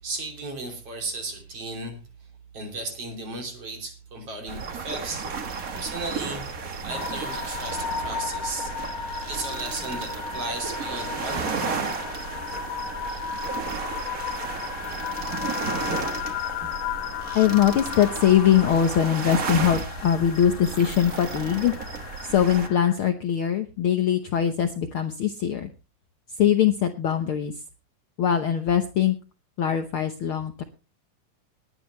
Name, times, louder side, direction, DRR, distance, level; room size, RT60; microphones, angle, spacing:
voice 1, 0.0-2.3 2.5-6.4 6.8-8.7 9.3-11.5, right 2 dB, 45° right, 4.1 m, -35 dB
sound 1, 4.5-22.7, right 5 dB, 60° right, 0.8 m, -33 dB
sound 2, 6.9-23.0, left 8 dB, 70° left, 2.3 m, -35 dB
voice 2, 17.3-21.7 22.2-25.7 26.4-27.5 28.2-29.2 29.6-30.6, left 9 dB, 90° left, 1.1 m, -22 dB
19.5 x 10.0 x 3.2 m
omnidirectional pair, 3.8 m